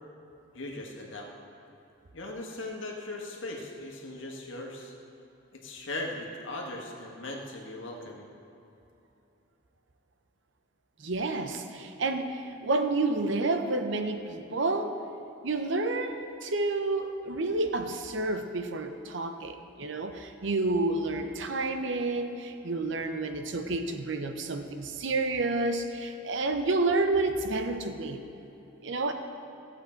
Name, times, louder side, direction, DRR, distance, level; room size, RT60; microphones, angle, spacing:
voice 1, 0.5-1.3 2.1-4.9 5.5-8.3, left 2 dB, 70° left, 0 dB, 1.5 m, -39 dB
voice 2, 11.0-15.0 15.4-28.2 28.8-29.1, right 2 dB, 65° right, 7 dB, 0.7 m, -30 dB
14.0 x 7.9 x 4.5 m, 2.9 s
head